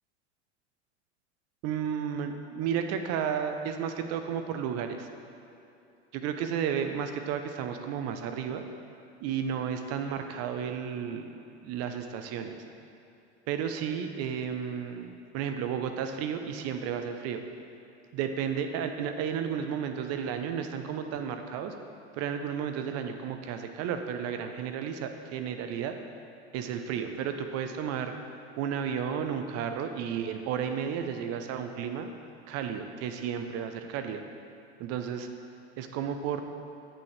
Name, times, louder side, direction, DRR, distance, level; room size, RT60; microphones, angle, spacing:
voice 1, 1.6-5.1 6.2-8.6 9.2-11.3 11.6-12.6 13.5-17.4 18.1-21.7 22.1-25.9 26.5-28.1 28.6-32.1 32.5-34.2 34.8-35.3 35.8-36.4, right 8 dB, 45° right, 7 dB, 0.7 m, -32 dB
8.5 x 5.9 x 3.2 m, 2.7 s
hypercardioid pair, 85°, 34 cm